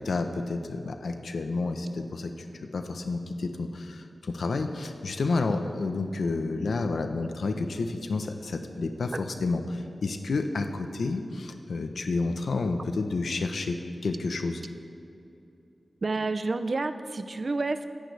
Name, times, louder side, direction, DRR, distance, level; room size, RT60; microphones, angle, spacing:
voice 1, 0.0-2.3 2.7-13.8 14.0-14.6, left 3 dB, 85° left, 6 dB, 1.0 m, -30 dB
voice 2, 16.0-17.9, right 3 dB, 50° right, 10 dB, 0.7 m, -29 dB
24.5 x 10.5 x 3.5 m, 2.8 s
wide cardioid pair, 100°, 0 cm